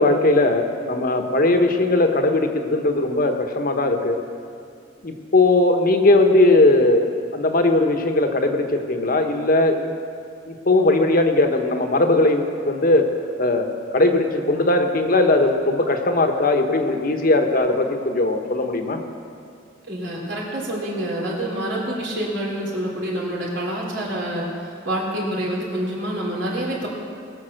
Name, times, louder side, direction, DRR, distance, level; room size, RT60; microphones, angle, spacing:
voice 1, 0.0-4.2 5.0-10.0 10.5-13.1 13.4-19.0, left 2 dB, 50° left, 5 dB, 1.1 m, -19 dB
voice 2, 19.9-26.9, right 1 dB, 75° right, -3 dB, 3.6 m, -27 dB
20.5 x 7.0 x 6.5 m, 2.5 s
head